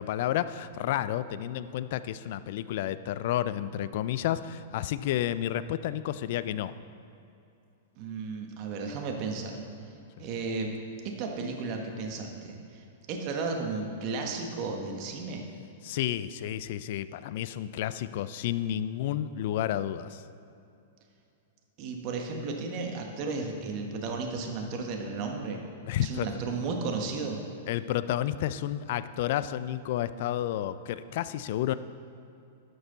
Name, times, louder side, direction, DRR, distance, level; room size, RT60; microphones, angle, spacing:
voice 1, 0.0-6.7 15.8-20.2 25.9-26.3 27.7-31.7, left 12 dB, 60° left, 15 dB, 0.3 m, -31 dB
voice 2, 8.0-9.6 10.2-10.7 11.0-15.5 21.8-25.6 26.0-27.4, right 4 dB, 45° right, 2 dB, 1.3 m, -34 dB
11.5 x 6.3 x 3.9 m, 2.7 s
hypercardioid pair, 120°, 0 cm